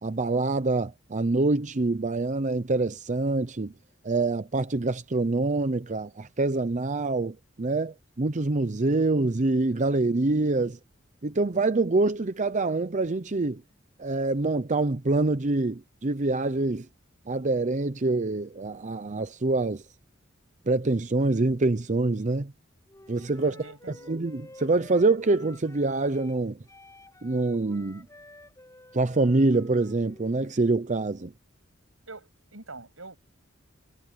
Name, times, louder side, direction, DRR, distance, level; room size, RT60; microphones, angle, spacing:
voice 1, 0.0-3.7 4.0-10.8 11.2-13.6 14.0-16.9 17.3-19.8 20.7-22.5 23.1-23.5 24.1-26.6 27.2-28.1 28.9-31.3, right 2 dB, 40° right, 0.7 m, -25 dB
Wind instrument woodwind instrument, 22.9-26.4 26.7-30.5, left 1 dB, 15° left, 7.1 m, -51 dB
voice 2, 23.4-24.1 32.1-33.2, right 3 dB, 85° right, 7.1 m, -45 dB
head